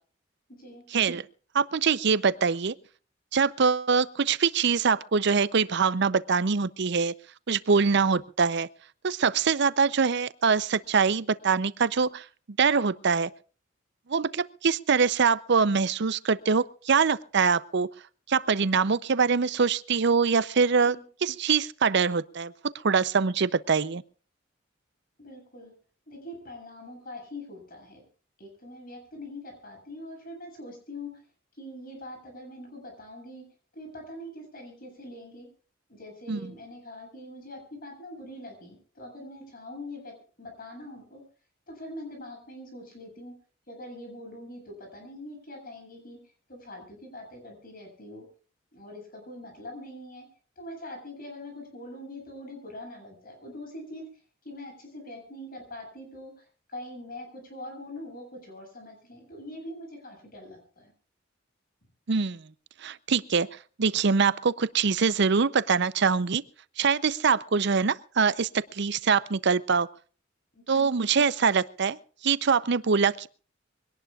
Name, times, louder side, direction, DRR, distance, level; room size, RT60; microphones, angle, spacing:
voice 1, 0.9-1.2 1.5-2.7 3.3-7.1 7.5-8.7 9.0-12.3 12.6-13.3 14.1-17.9 18.3-21.0 21.2-22.5 22.8-24.0 36.3-36.4 62.1-62.4 62.8-63.5 63.8-66.4 66.8-69.9 70.7-72.0 72.2-73.3, right 5 dB, 60° right, 16 dB, 0.6 m, -24 dB
voice 2, 25.2-25.7 26.1-28.0 28.4-31.2 31.5-33.4 33.7-35.5 35.9-40.1 40.4-41.2 41.7-43.3 43.7-46.2 46.5-48.2 48.7-50.3 50.6-54.0 54.4-60.9 70.5-70.9, left 1 dB, 45° left, 3 dB, 7.9 m, -43 dB
24.0 x 18.0 x 2.4 m, 0.39 s
head